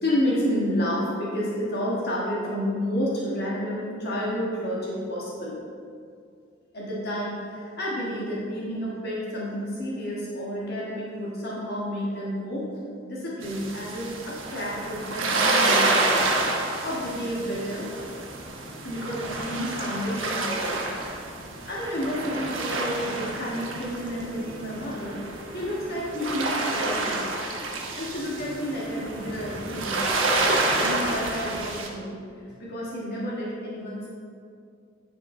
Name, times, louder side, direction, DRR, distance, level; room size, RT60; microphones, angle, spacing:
voice 1, 0.0-5.6 6.7-12.7 13.0-16.3 16.5-17.9 18.8-20.8 21.7-25.2 25.5-27.3 27.9-30.0 30.7-32.2 32.4-34.1, equal, 55° left, -5 dB, 1.5 m, -30 dB
sound 1, 13.4-31.9, right 2 dB, 85° right, 1.1 m, -28 dB
10.5 x 5.6 x 3.8 m, 2.4 s
head